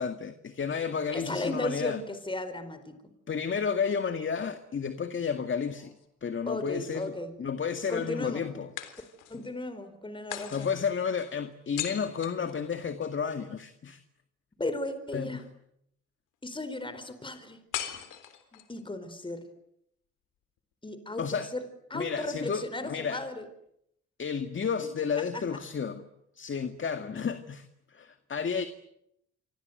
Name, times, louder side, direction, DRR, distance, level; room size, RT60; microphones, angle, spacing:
voice 1, 0.0-2.0 3.3-5.9 6.2-7.1 7.4-8.7 10.5-14.0 15.1-15.5 21.2-21.5 21.9-23.2 24.2-26.0 26.3-28.6, left 6 dB, 40° left, 9 dB, 2.1 m, -32 dB
voice 2, 1.1-3.0 6.5-7.3 7.9-8.4 9.3-10.7 14.6-15.4 16.4-17.6 18.5-19.4 20.8-21.2 21.5-21.6 21.9-23.4 24.8-25.1, left 2 dB, 15° left, 10 dB, 4.5 m, -35 dB
sound 1, 5.7-6.7 8.8-9.5 10.3-13.2 17.7-18.8, left 11 dB, 90° left, 3.9 m, -40 dB
28.5 x 25.0 x 8.0 m, 0.77 s
cardioid pair, 90°, 30 cm